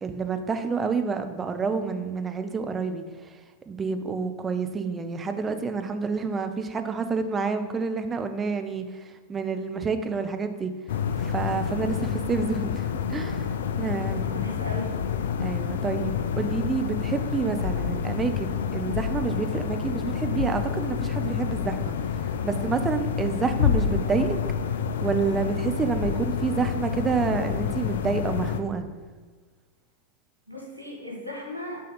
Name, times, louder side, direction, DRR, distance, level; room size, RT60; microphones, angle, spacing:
voice 1, 0.0-3.0 3.7-8.9 9.3-10.7 11.2-13.5 13.8-14.5 15.4-24.4 25.0-28.8, right 5 dB, 20° right, 7 dB, 0.5 m, -28 dB
sound 1, 10.9-28.6, left 7 dB, 60° left, 0.3 m, -28 dB
voice 2, 14.0-14.9 30.5-31.8, left 1 dB, 90° left, -1 dB, 1.6 m, -36 dB
6.0 x 4.2 x 4.0 m, 1.4 s
figure-of-eight pair, 90°, 0 cm